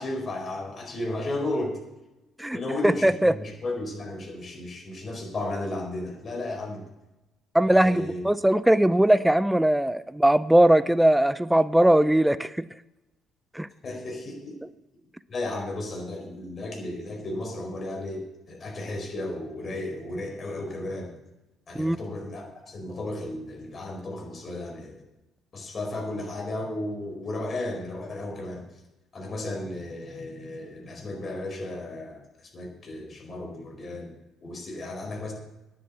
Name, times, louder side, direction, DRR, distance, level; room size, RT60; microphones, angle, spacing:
voice 1, 0.0-1.8 2.5-6.8 7.7-8.2 13.8-14.6 15.3-21.1 21.7-25.0 25.5-28.6 29.1-34.1 34.4-35.3, left 2 dB, 40° left, 1 dB, 4.7 m, -34 dB
voice 2, 2.8-3.3 7.5-12.5 13.6-13.7 21.8-22.0, right 1 dB, 5° right, 16 dB, 0.5 m, -20 dB
10.5 x 9.2 x 8.4 m, 0.98 s
hypercardioid pair, 50°, 0 cm